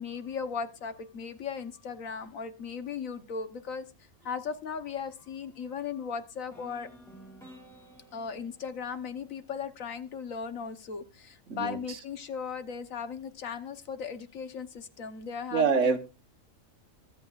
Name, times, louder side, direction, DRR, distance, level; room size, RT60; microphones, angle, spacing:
voice 1, 0.0-3.8 4.2-6.9 8.1-16.0, left 6 dB, 70° left, 1.4 m, -37 dB
sound 1, 6.5-10.5, right 1 dB, ahead, 5.4 m, -53 dB
voice 2, 11.5-12.0 15.5-16.0, right 5 dB, 60° right, 1.4 m, -26 dB
22.5 x 8.0 x 2.4 m
omnidirectional pair, 1.5 m